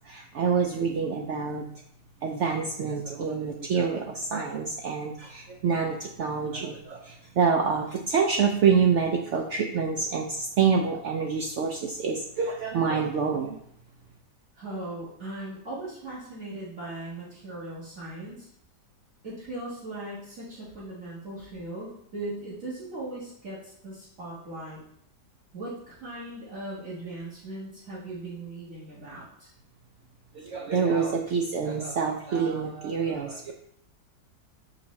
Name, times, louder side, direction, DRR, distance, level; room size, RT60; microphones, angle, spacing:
voice 1, 0.0-1.6 2.2-13.6 30.3-33.5, right 6 dB, 85° right, 1 dB, 0.6 m, -27 dB
voice 2, 14.5-18.5 19.2-24.8 25.5-29.5, right 2 dB, 50° right, -8 dB, 1.8 m, -38 dB
5.7 x 5.3 x 3.1 m, 0.72 s
omnidirectional pair, 1.8 m